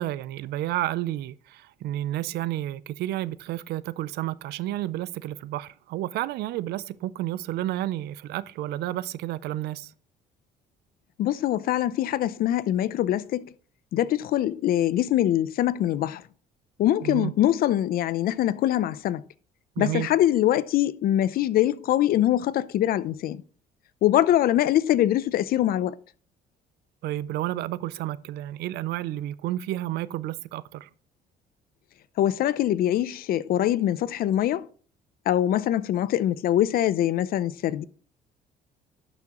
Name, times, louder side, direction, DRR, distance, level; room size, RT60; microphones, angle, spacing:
voice 1, 0.0-9.9 17.0-17.3 19.8-20.1 27.0-30.9, right 14 dB, 75° right, 0.5 m, -31 dB
voice 2, 11.2-13.5 13.9-16.2 16.8-19.2 19.8-23.4 24.0-25.9 32.2-34.7 35.3-37.8, left 12 dB, 60° left, 0.5 m, -23 dB
11.5 x 6.1 x 3.0 m
cardioid pair, 110°, 17 cm